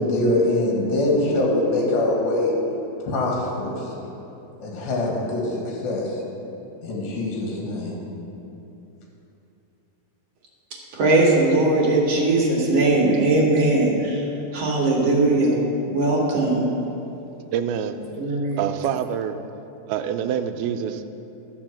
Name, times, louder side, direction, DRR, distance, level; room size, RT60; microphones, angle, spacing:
voice 1, 0.0-2.5 3.1-3.9 4.6-6.2 6.8-8.0, left 2 dB, 70° left, -2 dB, 3.4 m, -23 dB
voice 2, 10.9-14.3 14.5-16.7 18.2-18.6, right 2 dB, 60° right, -3 dB, 1.8 m, -20 dB
voice 3, 17.5-18.0 18.6-19.4 19.9-21.1, right 9 dB, 85° right, 8 dB, 2.4 m, -26 dB
12.0 x 5.4 x 7.4 m, 3.0 s
omnidirectional pair, 4.4 m